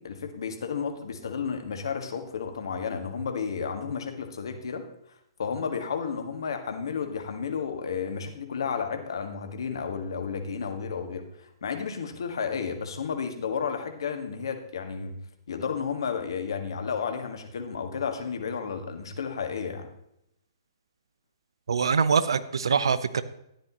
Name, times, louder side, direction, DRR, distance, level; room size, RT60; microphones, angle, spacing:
voice 1, 0.0-4.8 5.4-15.2 15.5-19.9, left 6 dB, 70° left, 6 dB, 1.6 m, -32 dB
voice 2, 21.7-23.2, right 6 dB, 75° right, 14 dB, 0.8 m, -24 dB
13.0 x 10.5 x 3.0 m, 0.80 s
hypercardioid pair, 130°, 3 cm